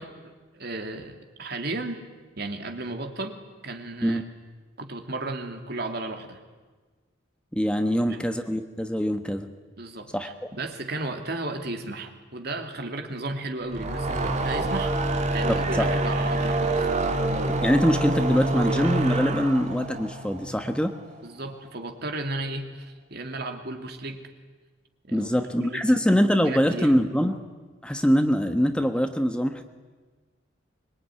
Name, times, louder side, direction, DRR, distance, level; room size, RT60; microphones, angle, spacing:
voice 1, 0.0-2.0 2.4-4.2 4.8-6.4 8.1-8.2 9.8-16.9 21.2-24.2 25.1-25.3 25.6-25.9 26.4-27.0, right 2 dB, 55° right, 5 dB, 2.7 m, -34 dB
voice 2, 7.5-9.5 10.1-10.3 15.5-15.9 17.6-20.9 25.1-27.3 27.8-29.6, equal, 5° left, 6 dB, 1.2 m, -23 dB
sound 1, 13.6-21.0, right 2 dB, 35° right, 2.0 m, -26 dB
25.0 x 23.0 x 9.8 m, 1.3 s
head